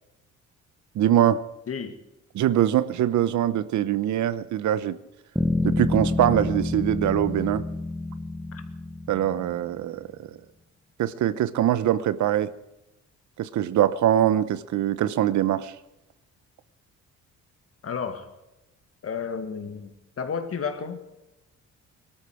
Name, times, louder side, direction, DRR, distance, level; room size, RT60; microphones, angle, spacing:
voice 1, 0.9-1.4 2.3-5.0 5.6-7.6 9.1-10.3 11.0-12.5 13.4-15.7, right 11 dB, 75° right, 0.9 m, -23 dB
voice 2, 1.7-2.0 8.5-8.6 17.8-18.3 19.0-21.0, left 6 dB, 50° left, 2.2 m, -32 dB
Bass guitar, 5.4-9.7, left 2 dB, 5° right, 1.3 m, -28 dB
19.5 x 13.0 x 5.0 m
cardioid pair, 90°, 30 cm